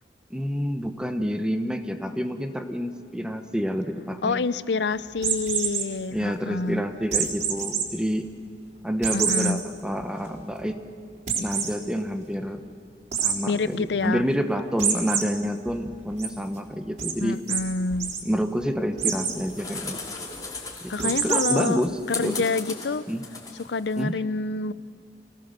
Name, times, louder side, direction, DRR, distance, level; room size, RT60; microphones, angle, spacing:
voice 1, 0.3-4.4 6.1-8.3 8.8-10.8 11.3-12.6 13.2-17.4 18.2-20.0 20.8-22.4 23.1-23.2 24.0-24.2, equal, 5° right, 6 dB, 1.1 m, -28 dB
voice 2, 4.2-6.8 9.1-9.6 13.4-14.2 17.2-18.2 20.9-21.8 22.1-23.1 23.6-24.7, left 3 dB, 80° left, 16 dB, 0.6 m, -27 dB
sound 1, 5.2-5.8 7.1-7.8 8.3-8.4 9.0-9.5 10.0-10.1 10.4-10.5 11.3-11.7 13.1-13.3 14.8-15.2 15.7-16.3 17.0-17.1 17.5-17.6 17.9-18.2 19.0-19.4 21.0-21.7, right 7 dB, 45° right, 3.9 m, -26 dB
sound 2, 19.0-24.0, left 3 dB, 20° left, 3.3 m, -38 dB
26.5 x 18.0 x 6.7 m, 2.3 s
head